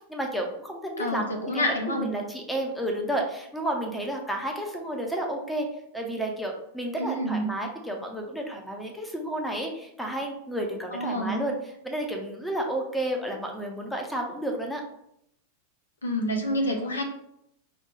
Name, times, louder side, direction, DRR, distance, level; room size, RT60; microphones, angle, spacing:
voice 1, 0.1-5.7 5.9-11.5 11.8-14.8, right 1 dB, 5° left, 2 dB, 0.7 m, -31 dB
voice 2, 1.0-2.1 7.0-7.5 10.9-11.5 16.0-17.0, equal, 75° left, 2 dB, 0.8 m, -28 dB
5.1 x 2.3 x 3.0 m, 0.75 s
figure-of-eight pair, 90°, 0 cm